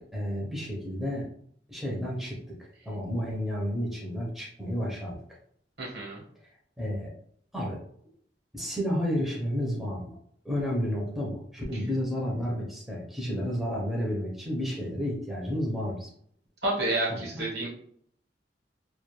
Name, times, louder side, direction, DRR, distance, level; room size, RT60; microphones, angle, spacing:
voice 1, 0.1-1.2 1.7-2.4 2.9-5.2 6.8-7.1 7.5-7.8 8.5-10.1 10.4-16.1 17.1-17.4, equal, ahead, -3 dB, 0.5 m, -31 dB
voice 2, 5.8-6.2 16.6-17.7, right 1 dB, 65° right, -3 dB, 1.1 m, -29 dB
2.2 x 2.2 x 3.0 m, 0.64 s
head